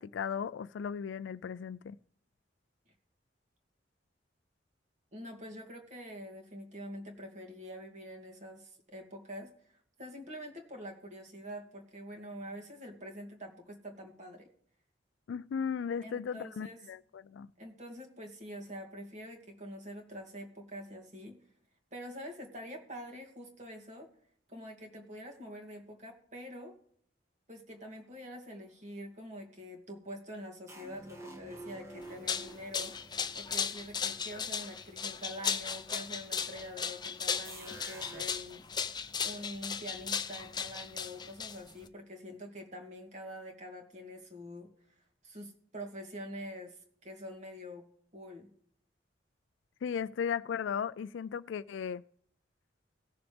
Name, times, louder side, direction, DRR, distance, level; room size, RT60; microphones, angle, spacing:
voice 1, 0.0-2.0 15.3-17.5 49.8-52.0, left 7 dB, 90° left, 0.3 m, -36 dB
voice 2, 5.1-9.5 10.0-14.5 16.0-16.8 17.6-21.4 21.9-24.1 24.5-26.7 27.5-33.0 33.3-38.6 39.2-44.7 45.2-47.8 48.1-48.5, equal, 40° right, 2.3 m, -45 dB
sound 1, 30.7-34.5 37.4-38.3, right 1 dB, 15° right, 1.3 m, -49 dB
sound 2, 32.0-41.9, left 6 dB, 25° left, 0.6 m, -36 dB
18.5 x 6.9 x 3.4 m
head